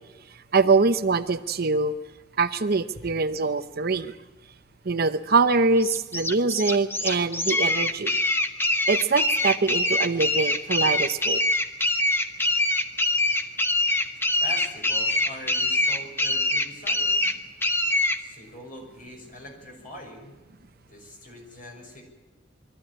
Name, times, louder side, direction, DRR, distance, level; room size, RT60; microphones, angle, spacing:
voice 1, 0.3-2.0 2.4-4.2 4.8-8.2 8.9-11.4, right 4 dB, 55° right, 10 dB, 0.8 m, -23 dB
sound 1, 5.8-18.2, left 2 dB, 10° left, 1.0 m, -24 dB
voice 2, 14.4-17.3 18.2-20.3 20.9-22.0, equal, 45° left, 2 dB, 6.0 m, -43 dB
23.0 x 14.0 x 9.8 m, 1.2 s
head